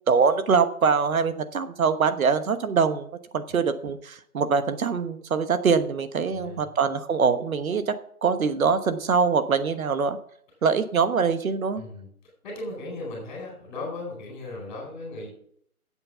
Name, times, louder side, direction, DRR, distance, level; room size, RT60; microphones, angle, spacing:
voice 1, 0.1-3.1 3.3-7.9 8.2-10.2 10.6-11.8, right 5 dB, 65° right, 10 dB, 1.2 m, -23 dB
voice 2, 6.3-6.7 11.8-12.1 12.4-15.3, left 2 dB, 25° left, -2 dB, 4.4 m, -36 dB
9.2 x 7.9 x 6.9 m, 0.64 s
hypercardioid pair, 165°, 45 cm